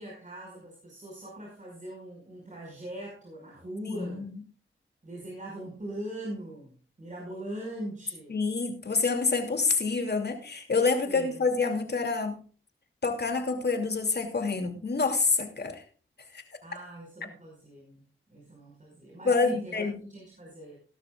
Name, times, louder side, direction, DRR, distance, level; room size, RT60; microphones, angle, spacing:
voice 1, 0.0-4.3 5.0-8.4 11.0-11.5 16.6-18.0 18.3-20.8, right 1 dB, 35° right, -3 dB, 5.5 m, -41 dB
voice 2, 3.9-4.3 8.3-12.4 13.0-15.8 16.3-16.4 19.2-19.9, left 4 dB, 50° left, 5 dB, 2.8 m, -27 dB
17.0 x 12.5 x 2.4 m, 0.39 s
wide cardioid pair, 80°, 21 cm